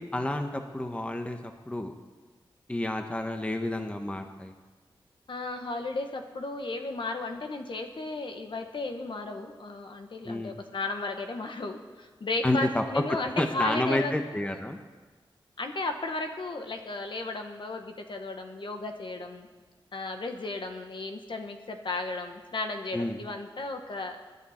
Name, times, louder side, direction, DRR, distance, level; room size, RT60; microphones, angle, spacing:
voice 1, 0.0-1.9 2.7-4.5 10.2-10.6 12.4-13.0 13.4-14.8 22.9-23.2, left 1 dB, 15° left, 5 dB, 1.1 m, -30 dB
voice 2, 5.3-14.1 15.6-19.5 19.9-24.2, left 3 dB, 65° left, 5 dB, 1.4 m, -34 dB
24.5 x 11.0 x 4.4 m, 1.3 s
wide cardioid pair, 110°, 9 cm